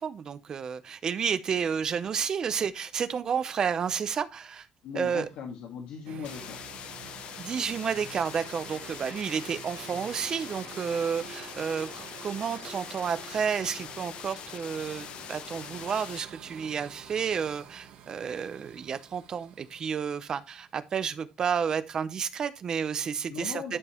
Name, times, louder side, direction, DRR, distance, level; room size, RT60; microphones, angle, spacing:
voice 1, 0.0-4.7 4.9-5.3 7.4-23.8, right 7 dB, 30° right, 0.6 m, -31 dB
voice 2, 4.8-6.7 11.3-11.4 23.3-23.8, left 6 dB, 80° left, 1.8 m, -39 dB
sound 1, 6.1-20.8, right 8 dB, 70° right, 1.6 m, -48 dB
sound 2, 6.2-16.2, left 10 dB, 50° left, 0.5 m, -43 dB
12.0 x 5.2 x 3.0 m
cardioid pair, 180°, 2 cm